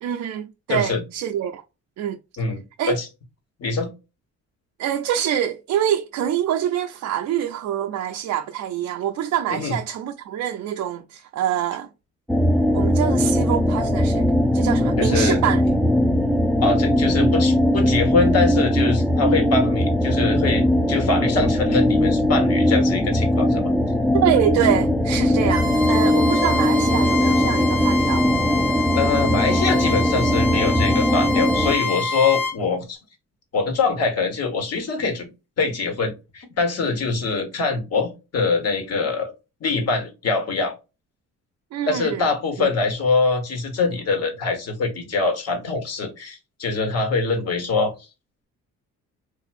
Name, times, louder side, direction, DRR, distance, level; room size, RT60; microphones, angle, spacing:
voice 1, 0.0-1.6 2.0-2.2 2.8-3.0 4.8-11.9 12.7-14.2 14.5-15.7 24.1-28.3 41.7-42.3 42.6-42.7, right 10 dB, 70° right, 0.5 m, -25 dB
voice 2, 0.7-1.0 2.4-2.6 2.9-3.1 3.6-3.9 9.5-9.8 15.0-15.4 16.6-23.7 28.9-33.0 33.5-35.3 35.6-39.3 39.6-40.7 41.9-47.9, left 4 dB, 55° left, 1.4 m, -23 dB
sound 1, 12.3-31.7, left 1 dB, ahead, 0.4 m, -20 dB
Bowed string instrument, 25.5-32.5, left 3 dB, 80° left, 1.5 m, -27 dB
3.6 x 2.6 x 2.5 m
cardioid pair, 90°, 30 cm